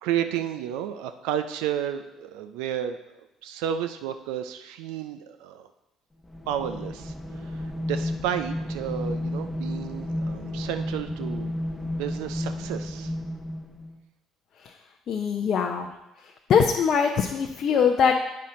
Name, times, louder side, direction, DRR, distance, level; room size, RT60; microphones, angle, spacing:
voice 1, 0.0-3.0 3.4-5.7 6.5-7.1 7.4-11.5 11.8-13.1, right 10 dB, 75° right, 9 dB, 0.4 m, -32 dB
sound 1, 6.3-14.0, left 1 dB, 15° left, 0.8 m, -32 dB
voice 2, 15.1-15.9 16.2-18.2, left 6 dB, 55° left, 3 dB, 0.6 m, -22 dB
8.4 x 5.7 x 3.8 m, 0.93 s
hypercardioid pair, 55°, 0 cm